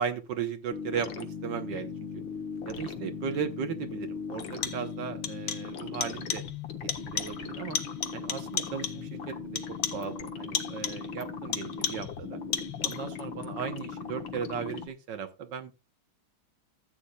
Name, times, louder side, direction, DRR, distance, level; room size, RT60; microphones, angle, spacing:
voice 1, 0.0-1.9 2.6-6.4 6.8-7.8 8.1-9.6 9.9-12.4 12.8-15.7, right 7 dB, 65° right, 1.5 m, -36 dB
sound 1, 0.7-14.9, left 6 dB, 70° left, 1.8 m, -39 dB
sound 2, 3.3-3.4 4.4-5.0 5.2-5.8 6.0-6.6 6.9-7.5 7.7-9.1 9.6-10.1 10.5-11.1 11.5-12.2 12.5-13.2, left 7 dB, 55° left, 1.2 m, -34 dB
14.5 x 8.4 x 2.3 m
omnidirectional pair, 2.3 m